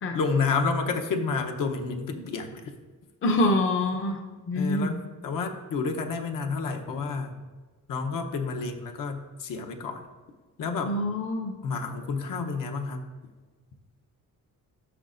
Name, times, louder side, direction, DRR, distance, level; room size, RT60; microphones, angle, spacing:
voice 1, 0.1-2.6 4.5-5.0 5.2-7.4 7.9-10.0 10.6-10.9 11.6-13.0, left 4 dB, 70° left, 4 dB, 0.9 m, -29 dB
voice 2, 3.2-4.2 4.5-5.0 10.8-11.5, left 1 dB, 35° left, 4 dB, 0.6 m, -25 dB
12.5 x 6.2 x 2.6 m, 1.3 s
cardioid pair, 150°, 35 cm